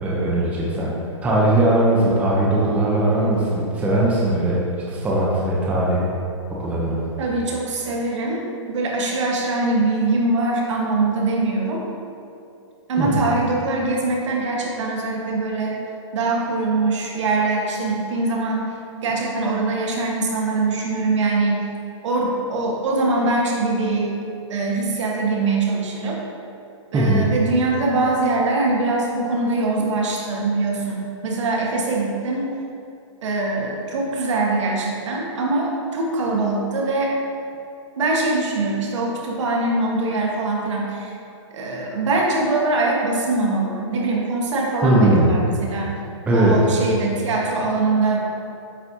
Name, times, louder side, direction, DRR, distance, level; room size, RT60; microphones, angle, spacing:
voice 1, 0.0-0.9 1.2-6.1 6.5-7.0 13.0-13.2 26.9-27.2 44.8-45.3 46.3-46.7, right 1 dB, 10° right, -5 dB, 0.7 m, -19 dB
voice 2, 7.2-11.9 12.9-15.8 16.1-18.6 19.0-21.7 22.0-24.1 24.5-26.2 26.9-32.5 33.2-37.1 38.0-41.1 41.5-45.9 46.3-48.2, right 3 dB, 70° right, -2 dB, 1.4 m, -22 dB
8.9 x 4.1 x 2.8 m, 2.5 s
hypercardioid pair, 155°, 16 cm